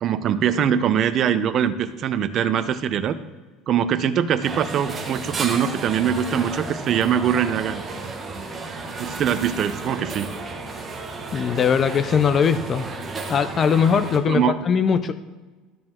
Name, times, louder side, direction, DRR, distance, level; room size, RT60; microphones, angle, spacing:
voice 1, 0.0-3.1 3.7-7.8 9.0-10.3 14.3-14.5, right 8 dB, 40° right, 11 dB, 0.6 m, -22 dB
sound 1, 4.4-14.2, right 3 dB, 20° right, 1.1 m, -33 dB
voice 2, 11.3-12.9 13.3-15.1, left 6 dB, 30° left, 12 dB, 0.4 m, -20 dB
12.5 x 5.0 x 3.6 m, 1.3 s
cardioid pair, 135°, 0 cm